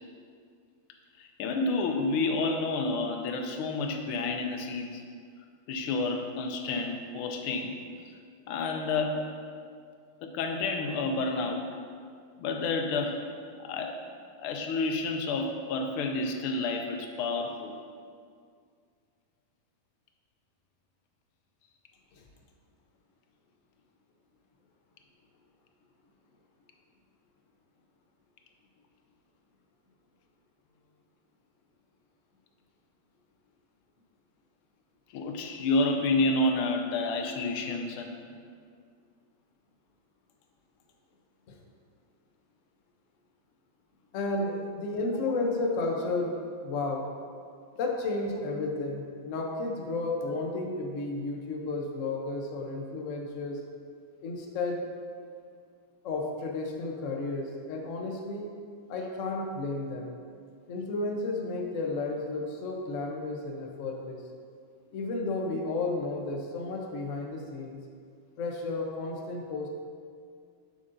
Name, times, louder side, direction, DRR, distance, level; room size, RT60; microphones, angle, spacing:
voice 1, 1.2-5.0 5.7-7.8 8.5-9.3 10.2-11.7 12.4-13.3 13.6-14.0 14.4-17.7 35.1-38.2, left 3 dB, 85° left, 4 dB, 1.5 m, -29 dB
voice 2, 44.1-46.3 46.6-47.1 47.8-53.6 54.2-54.8 56.0-58.5 58.9-60.1 60.7-64.2 64.9-67.8 68.4-69.7, left 2 dB, 70° left, 1 dB, 0.7 m, -32 dB
7.3 x 7.0 x 2.6 m, 2.2 s
omnidirectional pair, 2.3 m